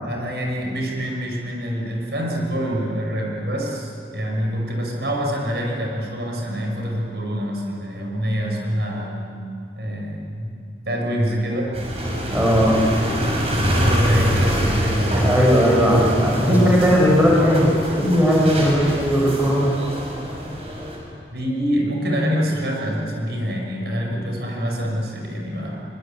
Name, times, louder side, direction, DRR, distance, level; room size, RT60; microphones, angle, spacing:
voice 1, 0.0-9.2 9.8-10.5 10.9-11.8 13.5-15.3 16.5-16.8 21.3-25.8, equal, 70° right, 0 dB, 5.8 m, -26 dB
sound 1, 11.7-21.0, equal, 35° right, 6.2 m, -24 dB
voice 2, 12.3-12.8 15.1-19.7, equal, 10° right, -3 dB, 5.8 m, -17 dB
24.5 x 24.0 x 8.9 m, 2.4 s
head